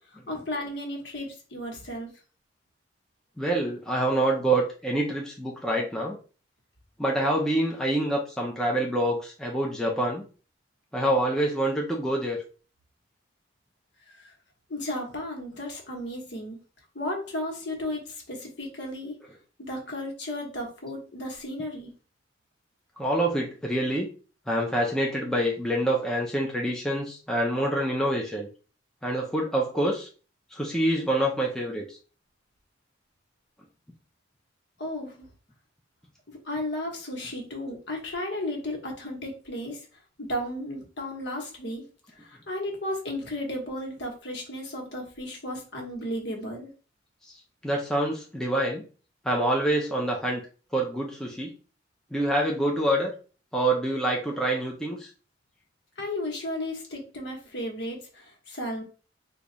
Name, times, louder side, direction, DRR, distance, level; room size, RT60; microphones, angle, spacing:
voice 1, 0.3-2.1 14.1-14.3 14.7-16.6 16.9-19.1 19.6-21.9 34.8-35.3 36.3-39.8 40.2-41.8 42.2-46.7 56.0-58.8, left 1 dB, 65° left, 0 dB, 1.1 m, -34 dB
voice 2, 3.4-6.2 7.0-10.3 10.9-12.4 23.0-24.1 24.5-28.5 29.0-30.1 30.5-31.9 47.6-48.8 49.2-50.4 50.7-51.5 52.1-53.1 53.5-55.1, right 1 dB, 5° left, -2 dB, 0.5 m, -26 dB
3.1 x 2.3 x 3.8 m, 0.37 s
head